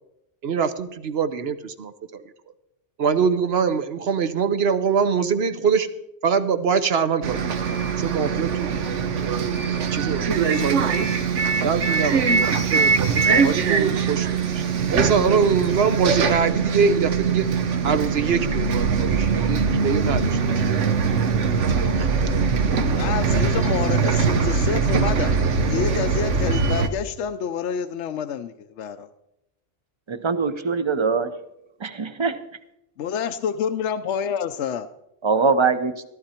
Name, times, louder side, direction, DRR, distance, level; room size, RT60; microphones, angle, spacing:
voice 1, 0.4-2.2 3.0-5.9 6.2-8.7 9.2-11.0 11.6-14.6 14.9-17.5 17.8-20.4 20.7-21.0 22.0-22.1, right 6 dB, 60° right, 11 dB, 1.0 m, -24 dB
Bus, 7.2-26.9, right 5 dB, 85° right, 1.4 m, -22 dB
voice 2, 22.8-29.1 33.0-34.9, left 7 dB, 75° left, 10 dB, 0.9 m, -28 dB
voice 3, 30.1-31.4 31.8-32.4 35.2-36.0, right 4 dB, 30° right, 12 dB, 0.7 m, -22 dB
14.5 x 14.0 x 4.4 m, 0.85 s
omnidirectional pair, 1.2 m